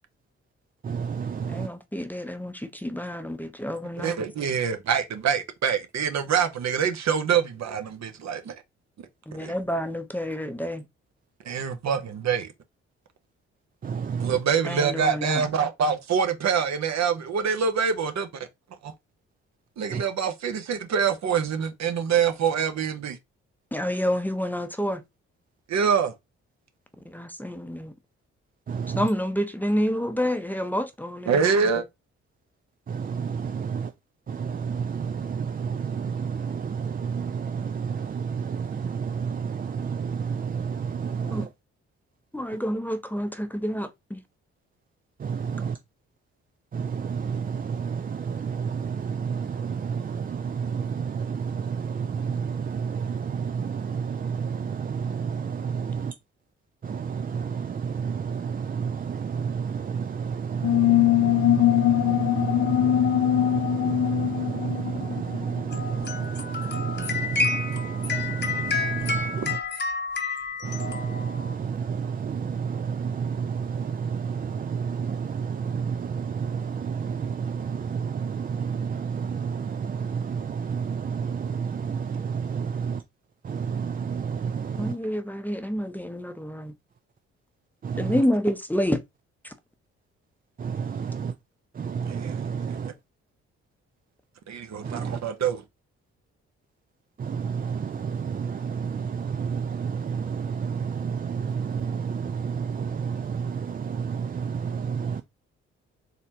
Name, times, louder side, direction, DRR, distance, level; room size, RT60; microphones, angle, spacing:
voice 1, 0.8-1.7 13.8-14.4 19.9-20.0 28.7-29.1 32.9-33.9 34.3-41.5 45.2-45.8 46.7-56.1 56.8-69.6 70.6-83.0 83.4-85.0 87.8-88.2 90.6-91.3 91.7-92.9 94.8-95.2 97.2-105.2, right 6 dB, 30° right, 0.4 m, -30 dB
voice 2, 1.5-4.3 9.3-10.9 14.6-15.5 23.7-25.0 27.0-27.9 29.0-31.8 41.2-41.5 42.3-44.2 84.8-86.7 88.0-89.0 89.4-89.5, equal, 5° left, 0.7 m, -28 dB
voice 3, 4.0-8.5 9.3-9.5 11.4-12.5 14.2-18.3 18.8-18.9 19.8-23.2 25.7-26.1 31.3-31.8 92.1-92.4 92.8-92.9 94.5-95.6, right 6 dB, 60° right, 0.9 m, -25 dB
sound 1, 60.6-65.8, left 13 dB, 65° left, 0.6 m, -22 dB
sound 2, 65.7-71.6, left 4 dB, 35° left, 0.9 m, -30 dB
4.0 x 3.2 x 2.8 m
hypercardioid pair, 45°, 31 cm